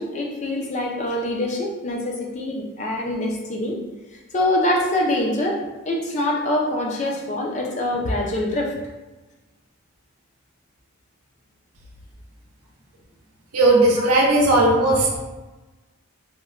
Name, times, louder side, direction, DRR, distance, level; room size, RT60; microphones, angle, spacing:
voice 1, 0.0-3.8 4.3-5.6 5.9-8.7 14.0-14.1 14.9-15.2, left 1 dB, 30° left, -1 dB, 0.3 m, -24 dB
voice 2, 13.5-15.2, right 2 dB, 85° right, -1 dB, 0.6 m, -17 dB
3.0 x 2.1 x 2.3 m, 1.2 s
head